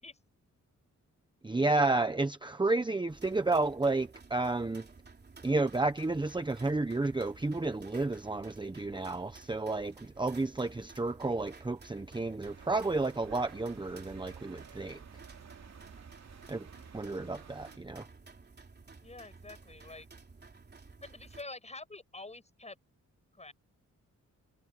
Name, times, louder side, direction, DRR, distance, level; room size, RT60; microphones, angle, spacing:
voice 1, 1.4-4.9 5.4-15.0 16.5-16.7 16.9-18.1, right 2 dB, 15° right, 1.1 m, -31 dB
sound 1, 3.1-21.4, right 4 dB, 35° right, 3.3 m, -54 dB
sound 2, 12.4-17.8, right 7 dB, 65° right, 2.8 m, -52 dB
voice 2, 19.0-20.1 21.0-22.8 23.3-23.5, left 2 dB, 20° left, 7.7 m, -47 dB
wide cardioid pair, 110°, 30 cm